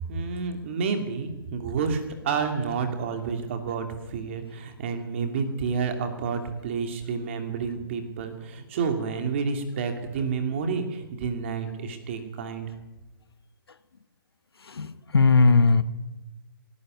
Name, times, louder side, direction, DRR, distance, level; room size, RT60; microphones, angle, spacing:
voice 1, 0.1-12.7, right 5 dB, 30° right, 5 dB, 2.9 m, -29 dB
voice 2, 14.8-15.8, left 4 dB, 80° left, 12 dB, 1.6 m, -18 dB
18.5 x 17.0 x 9.4 m, 1.1 s
hypercardioid pair, 165°, 13 cm